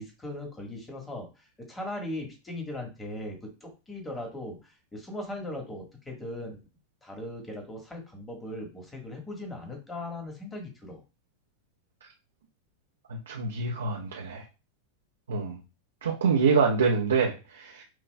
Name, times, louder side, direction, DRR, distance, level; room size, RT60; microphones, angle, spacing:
voice 1, 0.0-6.6 7.0-11.0, left 1 dB, 15° left, 1 dB, 1.4 m, -39 dB
voice 2, 13.1-14.4 15.3-15.6 16.0-17.8, right 5 dB, 75° right, 0 dB, 0.7 m, -26 dB
5.9 x 2.5 x 2.2 m, 0.30 s
hypercardioid pair, 95°, 0 cm